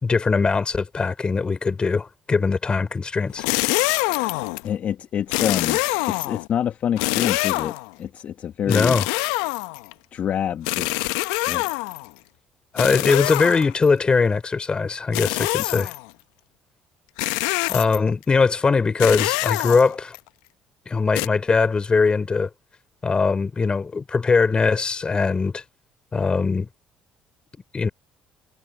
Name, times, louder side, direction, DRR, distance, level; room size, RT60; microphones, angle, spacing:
voice 1, 0.0-3.5 8.7-9.1 12.7-15.9 17.7-20.2 20.9-22.5 23.0-25.6 26.1-26.7 27.7-27.9, left 4 dB, 30° left, 5.5 m, -21 dB
sound 1, 3.3-4.7 5.3-6.5 7.0-7.9 8.7-9.9 10.7-12.1 12.8-13.9 15.1-16.1 17.2-18.1 19.0-20.2 21.2-21.3, left 24 dB, 80° left, 0.8 m, -25 dB
voice 2, 4.6-5.8 6.1-9.0 10.1-11.0 11.5-11.8, left 9 dB, 55° left, 1.6 m, -27 dB
hypercardioid pair, 55°, 3 cm